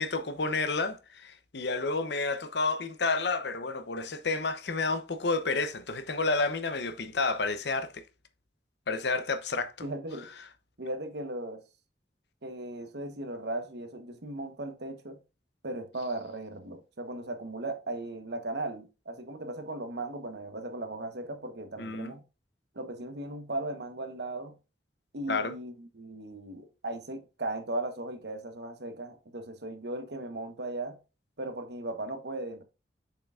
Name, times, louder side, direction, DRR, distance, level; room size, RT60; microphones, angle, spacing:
voice 1, 0.0-8.0 8.9-9.9 21.8-22.1 25.3-25.5, left 3 dB, 70° left, 0.8 m, -30 dB
voice 2, 9.8-10.3 10.8-11.6 12.4-15.2 15.6-22.2 22.7-24.6 25.1-31.0 31.4-32.6, right 2 dB, 70° right, 1.2 m, -37 dB
6.9 x 5.6 x 2.5 m
head